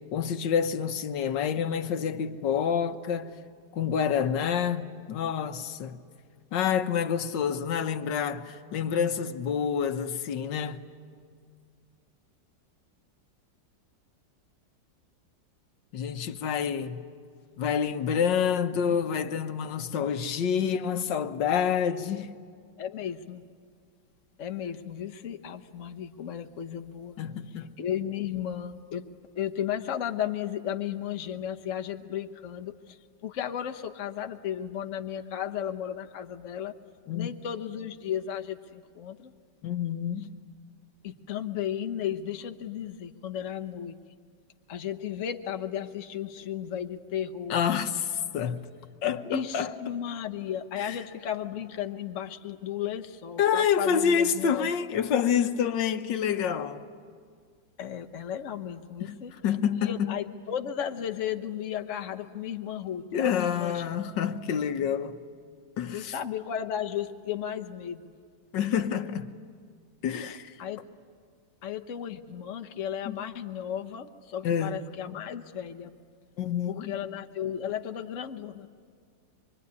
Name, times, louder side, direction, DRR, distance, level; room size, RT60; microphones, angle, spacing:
voice 1, 0.1-3.3 3.7-6.0 6.5-10.8 15.9-17.0 17.6-22.4 27.2-27.7 37.1-37.3 39.6-40.3 47.5-48.7 49.0-49.7 50.8-51.0 53.4-56.8 59.0-60.2 63.1-65.2 65.8-66.1 68.5-69.3 70.0-70.5 73.1-73.2 74.4-74.8 76.4-76.9, left 7 dB, 70° left, 1.7 m, -28 dB
voice 2, 22.8-23.4 24.4-27.2 27.8-29.1 29.3-36.7 37.1-39.3 41.0-44.0 44.7-47.6 49.3-54.8 57.8-59.3 59.8-63.9 65.8-68.1 70.6-70.8 71.6-76.0 76.7-78.7, left 9 dB, 50° left, 1.2 m, -34 dB
25.5 x 23.5 x 9.6 m
omnidirectional pair, 2.0 m